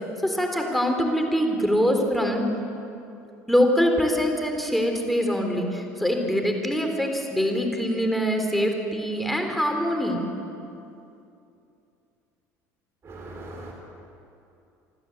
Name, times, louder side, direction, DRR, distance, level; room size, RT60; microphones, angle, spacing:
voice 1, 0.2-2.4 3.5-10.2, equal, ahead, 3 dB, 3.8 m, -24 dB
voice 2, 13.0-13.7, right 2 dB, 35° right, 0 dB, 3.8 m, -39 dB
27.0 x 12.0 x 8.0 m, 2.7 s
supercardioid pair, 90°, 7 cm